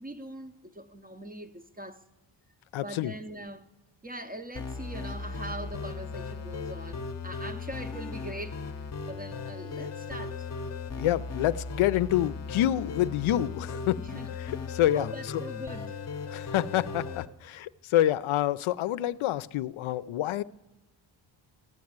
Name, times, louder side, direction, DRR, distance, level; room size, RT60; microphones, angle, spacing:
voice 1, 0.0-2.0 2.8-3.7 4.0-8.8 9.1-10.5 14.0-14.3 14.9-16.0, right 1 dB, 20° right, 0.5 m, -41 dB
voice 2, 2.7-3.1 11.0-14.0 14.4-15.4 16.3-20.4, left 13 dB, 75° left, 0.6 m, -27 dB
sound 1, 4.5-17.3, left 4 dB, 35° left, 0.7 m, -37 dB
14.5 x 10.5 x 8.7 m
wide cardioid pair, 180°, 49 cm